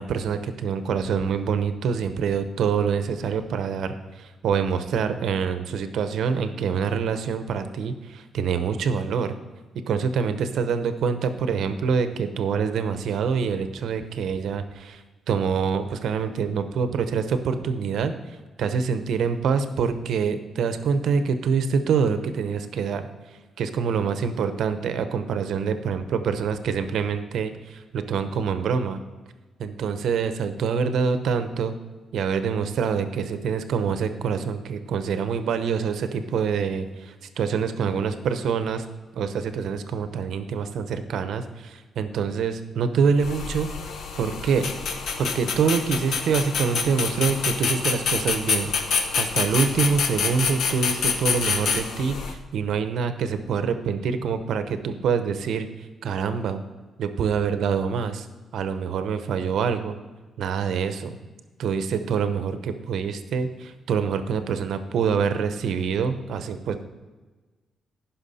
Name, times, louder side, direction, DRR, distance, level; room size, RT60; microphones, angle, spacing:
voice 1, 0.0-9.3 9.9-18.1 18.6-23.1 23.6-29.0 29.6-31.7 32.1-38.9 39.1-43.7 44.2-44.7 45.2-55.7 56.0-56.6 57.0-58.3 58.5-60.0 60.4-61.2 61.6-66.8, right 6 dB, 75° right, 10 dB, 0.8 m, -25 dB
sound 1, 43.2-52.4, left 5 dB, 75° left, 1.0 m, -27 dB
15.5 x 5.8 x 4.2 m, 1.3 s
cardioid pair, 140°, 0 cm